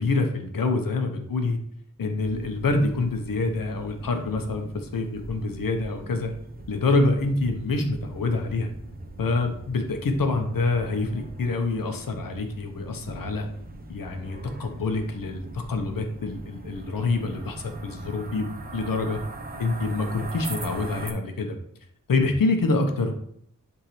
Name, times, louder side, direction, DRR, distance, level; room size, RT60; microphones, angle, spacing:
voice 1, 0.0-1.6 2.0-6.3 6.7-8.7 9.2-13.5 13.9-19.2 19.6-21.6 22.1-23.1, left 3 dB, 90° left, 4 dB, 1.1 m, -26 dB
sound 1, 2.2-21.1, right 2 dB, 30° right, 0.9 m, -41 dB
10.5 x 3.7 x 3.2 m, 0.70 s
wide cardioid pair, 115°, 33 cm